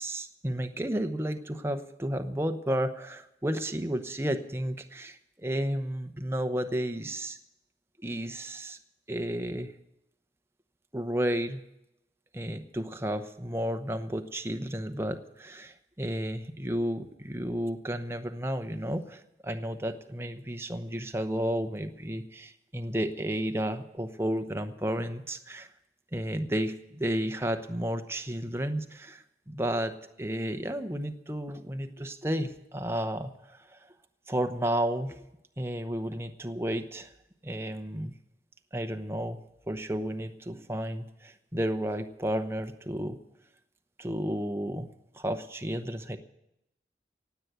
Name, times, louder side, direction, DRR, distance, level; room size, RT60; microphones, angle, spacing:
voice 1, 0.0-7.4 8.0-8.8 9.1-9.7 10.9-11.6 12.3-25.7 26.1-33.8 34.3-35.2 35.6-37.1 37.4-38.1 38.7-39.4 39.7-43.2 44.0-46.2, equal, 15° right, 8 dB, 0.9 m, -32 dB
18.0 x 8.2 x 9.2 m, 0.85 s
head